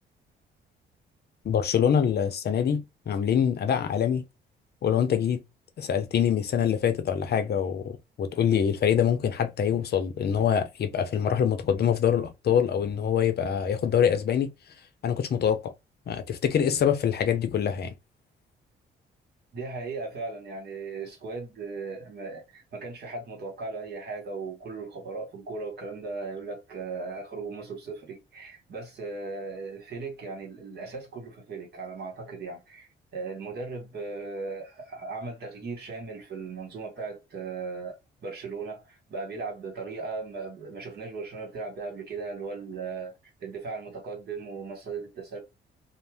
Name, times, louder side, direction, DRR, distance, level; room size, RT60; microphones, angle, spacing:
voice 1, 1.4-2.8 3.1-4.2 4.8-5.4 5.8-14.5 15.0-15.7 16.1-17.9, left 8 dB, 55° left, 0.6 m, -25 dB
voice 2, 19.5-43.1 43.4-45.4, right 4 dB, 55° right, 1.5 m, -37 dB
2.5 x 2.1 x 3.4 m
cardioid pair, 90°, 20 cm